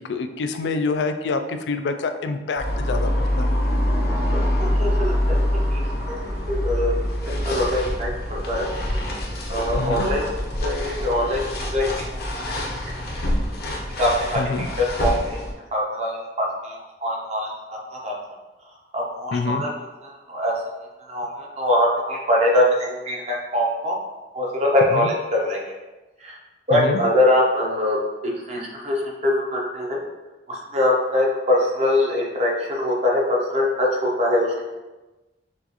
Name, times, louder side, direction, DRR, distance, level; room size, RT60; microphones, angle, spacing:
voice 1, 0.0-3.1 3.4-3.5 9.8-10.1 14.4-14.7 19.3-19.6 24.9-25.1 26.7-27.0, left 3 dB, 75° left, 8 dB, 0.4 m, -26 dB
sound 1, 2.6-15.5, left 1 dB, 60° left, 0.7 m, -25 dB
voice 2, 4.3-5.4 5.7-5.8 6.1-6.9 7.4-8.1 8.5-8.7 9.5-10.2 10.6-11.9 12.1-12.6 12.9-13.0 14.0-14.4 14.8-15.4 15.7-18.1 18.9-19.7 20.0-20.6 21.1-24.0 24.3-25.1 25.4-25.7 26.2-26.4 26.7-28.0 28.2-30.0 30.5-34.7, left 1 dB, 40° right, -3 dB, 0.9 m, -23 dB
5.8 x 2.5 x 2.9 m, 1.1 s
head